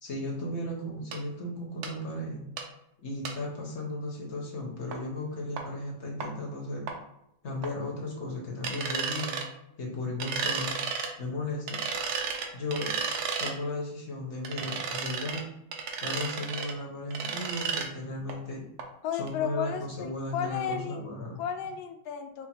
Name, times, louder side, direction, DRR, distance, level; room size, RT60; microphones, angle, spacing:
voice 1, 0.0-2.5 3.0-6.9 7.4-9.4 9.8-10.8 11.2-11.8 12.5-12.9 13.4-15.4 16.0-18.6 19.1-21.4, left 2 dB, 50° left, -2 dB, 0.9 m, -35 dB
sound 1, 1.1-1.2 1.8-1.9 2.6-2.7 3.3-3.4 4.9-5.0 5.6-5.7 6.2-6.3 6.9-7.0 7.6-7.7 8.6-9.5 10.2-11.1 11.7-13.5 14.4-15.4 15.7-16.7 17.1-17.9 18.3-18.4 18.8-18.9 19.3-19.4, right 5 dB, 65° right, 1.0 m, -33 dB
voice 2, 19.0-21.1 21.4-22.5, left 8 dB, 80° left, 6 dB, 1.3 m, -33 dB
5.0 x 2.2 x 4.3 m, 0.80 s
omnidirectional pair, 2.1 m